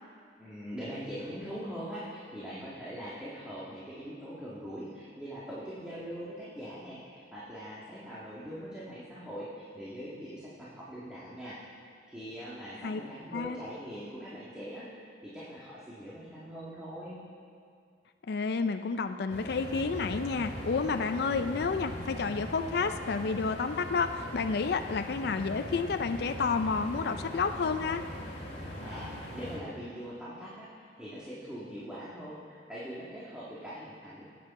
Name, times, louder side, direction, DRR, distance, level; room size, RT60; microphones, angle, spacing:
voice 1, 0.4-11.6 12.0-17.2 28.8-34.2, equal, 5° right, -9 dB, 1.8 m, -42 dB
voice 2, 18.3-28.0, left 4 dB, 65° left, 8 dB, 0.4 m, -30 dB
sound 1, 19.3-29.6, left 1 dB, 45° left, 2.8 m, -40 dB
19.0 x 8.6 x 4.2 m, 2.2 s
head